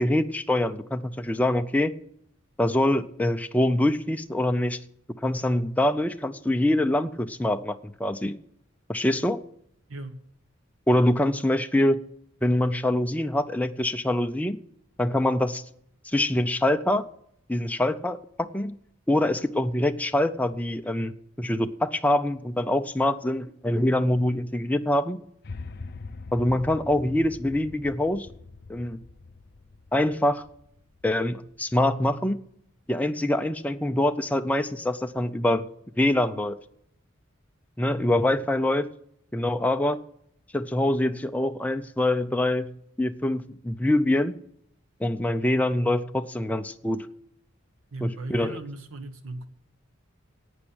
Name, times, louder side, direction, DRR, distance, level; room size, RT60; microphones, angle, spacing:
voice 1, 0.0-1.9 2.6-4.8 5.2-8.4 8.9-9.4 10.9-12.0 12.4-14.6 15.0-15.6 16.0-17.0 17.5-18.8 19.1-25.2 26.3-28.3 28.7-29.0 29.9-30.4 31.0-32.4 32.9-35.7 36.0-36.6 37.8-38.9 39.3-40.0 40.5-42.7 43.0-44.3 45.0-47.1 48.0-48.6, left 1 dB, 5° left, 0.5 m, -24 dB
sound 1, 25.4-31.6, left 3 dB, 50° left, 0.6 m, -43 dB
voice 2, 47.9-49.5, right 2 dB, 90° right, 1.4 m, -37 dB
11.5 x 8.8 x 8.7 m
head